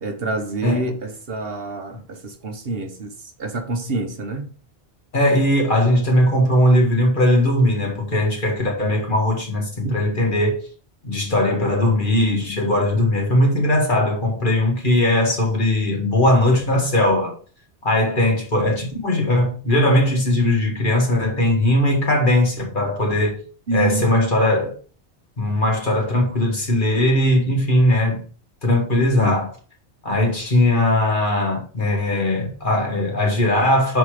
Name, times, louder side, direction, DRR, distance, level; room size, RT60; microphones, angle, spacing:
voice 1, 0.0-4.5 9.8-10.0 23.7-24.0, right 3 dB, 60° right, 1.2 m, -27 dB
voice 2, 5.1-10.6 11.0-17.3 17.8-23.4 23.7-24.7 25.4-28.2 28.6-29.5 30.0-34.0, left 1 dB, 45° left, 1.9 m, -19 dB
5.8 x 4.3 x 4.9 m
omnidirectional pair, 1.1 m